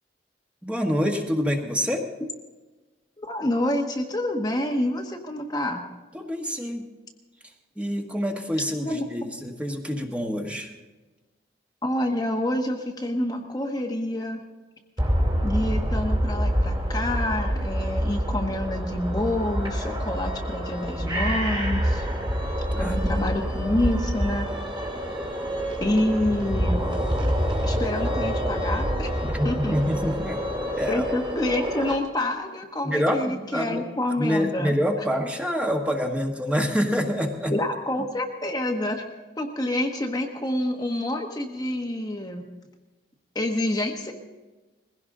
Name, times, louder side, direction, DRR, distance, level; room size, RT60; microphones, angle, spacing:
voice 1, 0.6-2.1 6.1-6.8 7.8-10.7 22.7-23.3 29.2-30.4 30.8-31.0 32.8-33.8 34.2-37.5, equal, 5° right, 2 dB, 1.4 m, -26 dB
voice 2, 3.2-5.9 8.8-9.0 11.8-14.4 15.4-22.1 22.8-24.5 25.8-26.9 27.6-29.8 30.9-35.0 37.5-39.0 39.4-42.4 43.3-44.1, left 1 dB, 20° left, 1 dB, 1.1 m, -27 dB
sound 1, 15.0-32.0, equal, 25° right, 2.5 m, -27 dB
21.0 x 16.5 x 3.8 m, 1.2 s
head